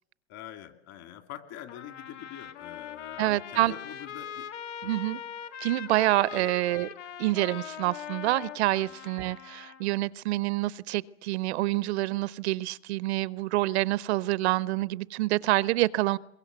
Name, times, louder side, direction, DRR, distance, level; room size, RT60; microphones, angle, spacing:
voice 1, 0.3-4.5 4.8-4.9 6.3-6.5 8.8-8.9, left 11 dB, 45° left, 8 dB, 2.6 m, -45 dB
Trumpet, 1.7-9.8, left 9 dB, 80° left, 1.7 m, -41 dB
voice 2, 3.2-3.7 4.8-5.2 5.6-6.9 7.2-16.2, right 18 dB, 65° right, 20 dB, 0.8 m, -27 dB
23.0 x 21.5 x 8.1 m, 0.84 s
hypercardioid pair, 115°, 36 cm